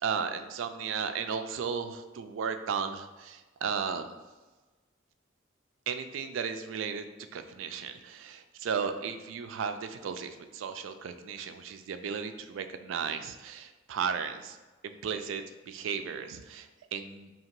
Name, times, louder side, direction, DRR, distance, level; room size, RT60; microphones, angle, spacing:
voice 1, 0.0-4.1 5.9-7.1 7.3-14.6 14.8-17.3, right 6 dB, 80° right, 9 dB, 0.3 m, -35 dB
2.8 x 2.8 x 4.4 m, 1.2 s
head